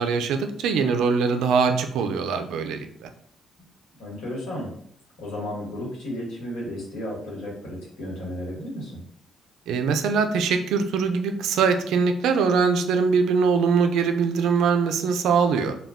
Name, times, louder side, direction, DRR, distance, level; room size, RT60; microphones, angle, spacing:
voice 1, 0.0-3.1 9.7-15.8, right 5 dB, 85° right, 7 dB, 0.3 m, -22 dB
voice 2, 4.0-4.7 5.2-9.0, left 1 dB, 90° left, -3 dB, 1.1 m, -33 dB
2.1 x 2.1 x 3.4 m, 0.64 s
cardioid pair, 90°, 0 cm